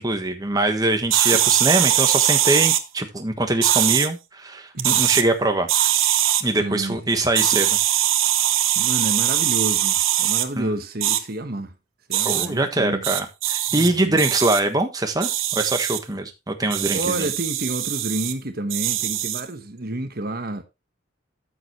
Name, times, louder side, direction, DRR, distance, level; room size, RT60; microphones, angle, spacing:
voice 1, 0.0-5.7 6.4-7.8 10.6-10.7 12.2-17.3, right 2 dB, 20° right, 1.3 m, -23 dB
sound 1, 1.1-2.8 3.6-4.1 4.8-5.2 5.7-6.4 7.4-10.5 11.0-11.2 12.1-12.5 13.0-13.9 14.2-14.6 15.2-16.0 16.7-18.3 18.7-19.5, right 12 dB, 75° right, 1.1 m, -21 dB
voice 2, 4.8-5.1 6.5-7.0 8.7-11.7 12.1-13.1 13.7-14.2 16.9-20.6, right 1 dB, 45° right, 1.3 m, -30 dB
13.5 x 6.9 x 3.1 m
head